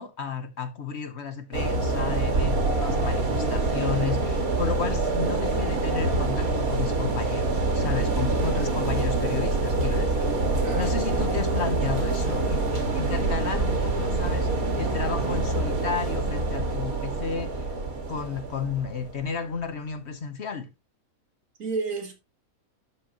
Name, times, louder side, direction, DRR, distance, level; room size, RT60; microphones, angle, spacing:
voice 1, 0.0-10.3 10.8-12.6 12.9-17.7 18.1-20.7, left 6 dB, 55° left, 1.1 m, -32 dB
sound 1, 1.5-19.5, right 3 dB, 85° right, 2.3 m, -26 dB
voice 2, 10.6-11.4 21.6-22.1, right 4 dB, 65° right, 2.1 m, -33 dB
12.0 x 5.0 x 2.9 m
omnidirectional pair, 1.5 m